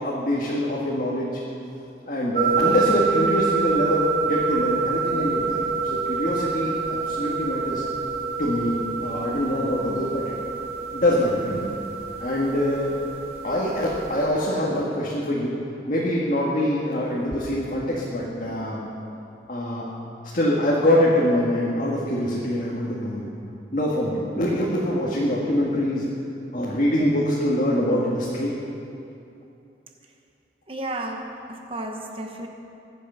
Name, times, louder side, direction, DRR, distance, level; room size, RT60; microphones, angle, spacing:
voice 1, 0.0-1.4 2.1-7.8 8.4-10.4 10.9-11.7 12.2-12.9 13.4-15.6 15.8-18.9 19.5-19.9 20.3-23.3 23.7-26.0 26.5-28.6, left 1 dB, 45° left, -5 dB, 1.8 m, -24 dB
sound 1, 2.4-14.2, right 5 dB, 50° right, 2.9 m, -27 dB
voice 2, 30.7-32.5, right 1 dB, 30° right, 3 dB, 1.1 m, -33 dB
22.5 x 8.3 x 5.7 m, 2.7 s
head